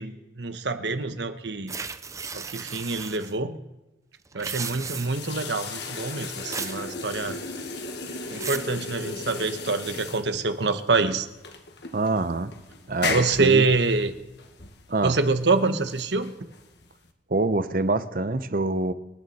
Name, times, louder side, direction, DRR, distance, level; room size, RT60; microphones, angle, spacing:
voice 1, 0.0-1.7 2.3-3.6 4.3-7.4 8.3-11.3 13.1-14.1 15.0-16.3, right 3 dB, 75° right, 1.2 m, -25 dB
sound 1, 1.7-3.3 4.3-5.3 6.5-6.8 7.2-7.6 8.1-8.7, right 5 dB, 20° right, 0.5 m, -35 dB
sound 2, 4.7-17.1, left 4 dB, 70° left, 1.6 m, -36 dB
voice 2, 11.9-12.5 12.9-13.7 14.9-15.1 17.3-18.9, right 2 dB, 50° right, 0.8 m, -25 dB
27.0 x 9.5 x 4.3 m
head